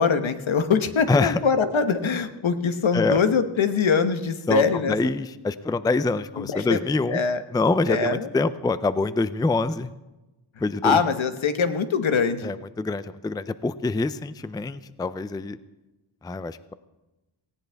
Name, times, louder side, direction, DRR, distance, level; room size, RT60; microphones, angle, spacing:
voice 1, 0.0-5.1 6.4-6.8 7.1-7.4 7.9-8.3 10.8-12.5, left 5 dB, 75° left, 10 dB, 1.2 m, -23 dB
voice 2, 1.1-1.4 2.9-3.2 4.5-7.2 7.5-9.9 10.6-11.0 12.4-15.6 16.2-16.7, left 3 dB, 10° left, 14 dB, 0.4 m, -25 dB
18.5 x 17.0 x 3.5 m, 1.0 s
wide cardioid pair, 140°, 47 cm